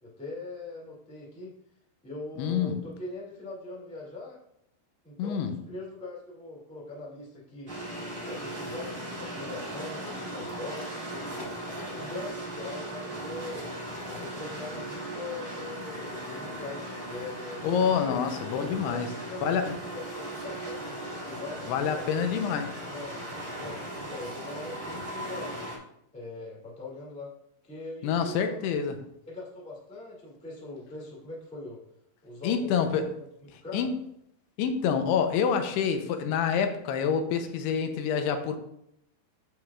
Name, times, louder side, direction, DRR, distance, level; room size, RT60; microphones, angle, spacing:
voice 1, 0.0-1.5 2.0-4.4 5.0-7.7 8.3-11.5 11.9-13.7 14.1-18.2 18.8-20.8 21.2-22.1 22.8-23.1 23.5-25.6 26.1-27.3 27.6-28.8 29.3-31.8 32.2-33.2 33.6-33.9, left 2 dB, 10° left, -5 dB, 0.4 m, -41 dB
voice 2, 2.4-2.9 5.2-5.6 17.6-19.1 19.4-19.8 21.7-22.7 28.0-29.0 32.4-33.1 33.7-33.9 34.6-38.6, left 7 dB, 85° left, 7 dB, 2.7 m, -27 dB
sound 1, 7.7-25.8, right 1 dB, 40° right, 0.7 m, -38 dB
13.5 x 4.9 x 2.4 m, 0.77 s
omnidirectional pair, 4.7 m